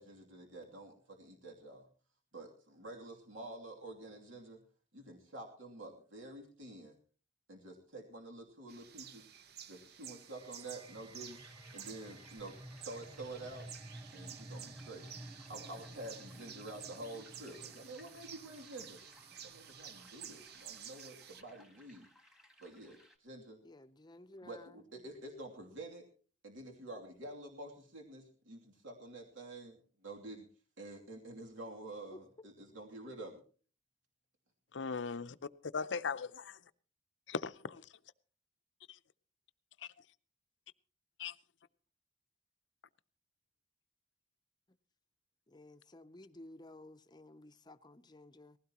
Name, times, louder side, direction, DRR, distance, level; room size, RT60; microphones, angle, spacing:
voice 1, 0.0-1.9 2.3-4.6 4.9-6.9 7.5-9.3 9.6-11.4 11.7-12.6 12.8-13.7 14.1-15.1 15.5-19.0 19.4-22.1 22.6-23.6 24.4-26.1 26.4-30.5 30.8-33.4, right 2 dB, 80° right, 2.8 m, -49 dB
sound 1, 8.7-21.4, right 9 dB, 55° right, 0.8 m, -52 dB
sound 2, 10.1-21.3, right 1 dB, 25° right, 1.3 m, -54 dB
sound 3, 11.1-23.2, equal, 5° right, 1.4 m, -64 dB
voice 2, 23.6-24.8 32.1-32.5 45.5-48.6, left 1 dB, 20° left, 0.7 m, -55 dB
voice 3, 34.7-35.4 35.6-36.6 37.3-37.9 38.9-39.0 39.8-39.9 41.2-41.3, left 5 dB, 70° left, 0.6 m, -39 dB
19.5 x 16.0 x 3.0 m
head